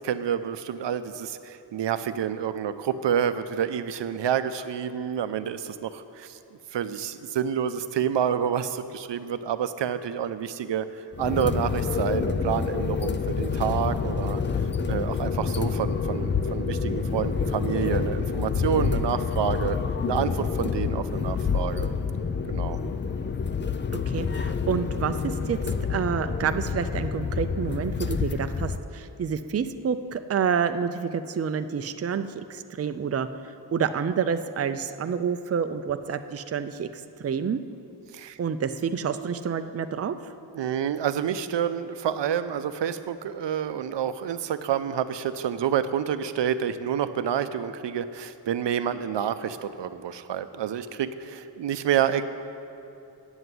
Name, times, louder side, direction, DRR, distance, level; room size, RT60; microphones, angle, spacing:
voice 1, 0.0-6.4 6.7-10.9 11.2-14.4 14.8-19.8 20.1-21.9 22.5-22.8 38.1-38.4 40.5-52.2, right 9 dB, 80° right, 12 dB, 0.6 m, -28 dB
sound 1, 11.1-28.8, left 5 dB, 30° left, 0.4 m, -28 dB
voice 2, 24.1-25.6 25.9-33.3 33.7-37.6 38.4-40.1, right 7 dB, 35° right, 9 dB, 0.4 m, -28 dB
9.6 x 8.0 x 7.7 m, 2.8 s
wide cardioid pair, 105°, 42 cm